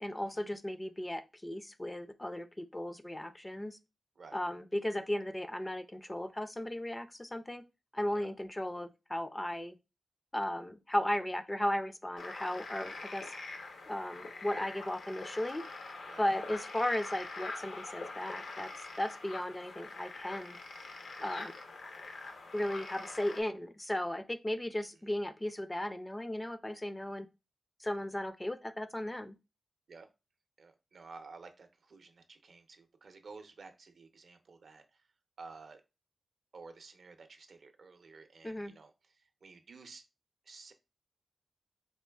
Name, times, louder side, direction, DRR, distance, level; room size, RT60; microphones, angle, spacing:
voice 1, 0.0-3.8 4.3-7.6 7.9-9.7 10.3-13.3 13.9-15.6 16.2-18.7 19.0-20.6 21.2-21.5 22.5-27.3 27.8-29.4 38.4-38.7, left 1 dB, 15° left, 9 dB, 0.3 m, -36 dB
sound 1, 12.2-23.4, left 3 dB, 85° left, 0.7 m, -44 dB
voice 2, 30.6-35.1 35.4-35.8 36.5-40.0 40.4-40.7, right 4 dB, 65° right, 7 dB, 0.5 m, -53 dB
4.1 x 3.1 x 2.3 m, 0.27 s
wide cardioid pair, 110°, 0 cm